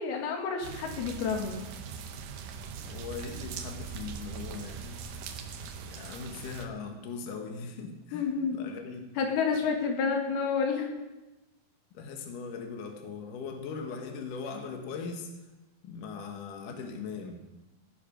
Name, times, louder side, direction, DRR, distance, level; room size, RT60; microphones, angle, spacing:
voice 1, 0.0-1.6 8.1-8.6 9.2-10.9, left 5 dB, 85° left, 2 dB, 3.5 m, -29 dB
sound 1, 0.6-6.7, right 6 dB, 70° right, 2.3 m, -41 dB
voice 2, 2.9-5.0 5.8-9.0 11.9-15.3 15.8-17.4, left 5 dB, 65° left, 3 dB, 2.9 m, -40 dB
16.0 x 10.5 x 5.2 m, 1.1 s
omnidirectional pair, 4.3 m